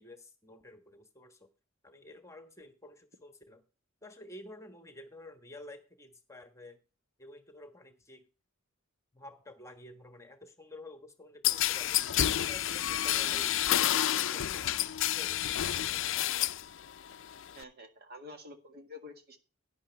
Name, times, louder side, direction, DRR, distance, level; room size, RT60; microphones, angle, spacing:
voice 1, 0.0-1.5 1.8-3.6 4.0-6.8 7.2-8.3 9.1-12.1 12.4-13.6 13.9-14.7 15.0-16.5, left 1 dB, 15° left, 7 dB, 1.3 m, -51 dB
sound 1, 11.4-16.7 17.0-17.6, left 12 dB, 60° left, 0.5 m, -29 dB
voice 2, 17.5-19.4, left 2 dB, 50° right, 6 dB, 1.8 m, -48 dB
11.5 x 10.0 x 3.4 m, 0.33 s
head